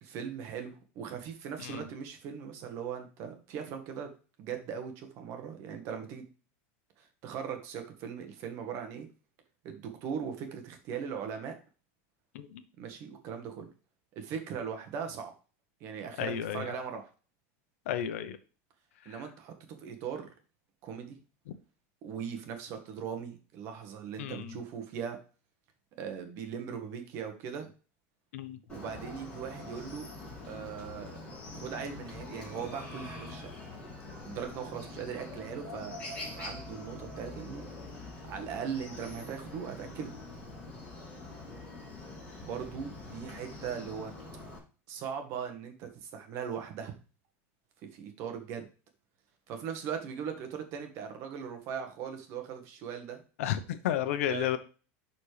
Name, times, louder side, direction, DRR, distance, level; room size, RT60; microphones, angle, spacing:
voice 1, 0.0-4.1 4.4-6.2 7.0-9.1 9.6-11.5 12.8-13.7 14.1-15.3 15.8-17.0 19.0-20.3 20.8-21.2 22.0-25.2 26.0-27.7 28.7-30.1 30.5-31.2 31.5-33.5 34.2-36.0 36.4-37.7 38.3-40.1 42.4-44.1 44.9-47.0 47.9-48.7 49.5-53.2 54.3-54.5, right 7 dB, 40° right, 6 dB, 1.5 m, -39 dB
voice 2, 16.2-16.7 17.9-18.4 19.1-19.2 24.2-24.6 28.3-28.6 53.4-54.6, left 10 dB, 85° left, 11 dB, 0.9 m, -32 dB
Chicken rooster, 28.7-44.6, left 2 dB, 15° left, 2.9 m, -44 dB
11.0 x 4.3 x 3.4 m, 0.36 s
supercardioid pair, 165°, 7 cm